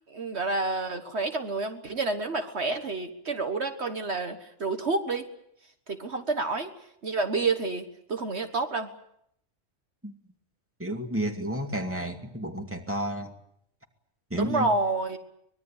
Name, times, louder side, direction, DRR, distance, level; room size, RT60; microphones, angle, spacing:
voice 1, 0.1-5.3 5.9-6.7 7.0-8.9 14.3-15.2, right 3 dB, 60° right, 7 dB, 1.7 m, -29 dB
voice 2, 10.8-13.3 14.3-14.7, right 1 dB, 10° right, 4 dB, 2.5 m, -31 dB
24.5 x 21.0 x 8.9 m, 0.73 s
omnidirectional pair, 1.3 m